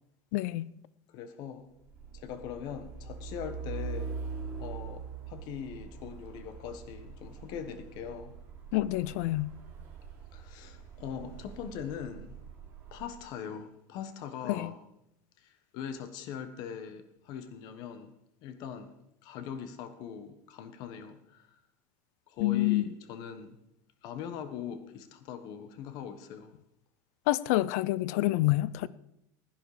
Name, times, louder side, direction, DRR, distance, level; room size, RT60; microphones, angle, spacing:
voice 1, 0.3-0.7 8.7-9.5 14.5-14.7 22.4-22.8 27.3-28.9, left 17 dB, 65° left, 0.5 m, -27 dB
voice 2, 1.1-1.6 2.1-4.1 4.6-8.3 10.3-12.4 12.9-14.8 15.4-18.1 18.4-18.9 19.2-21.5 22.3-23.6 24.0-26.5, left 8 dB, 45° left, 1.4 m, -41 dB
Truck, 1.7-13.2, right 5 dB, 25° right, 3.3 m, -43 dB
16.5 x 10.0 x 5.0 m
cardioid pair, 165°, 9 cm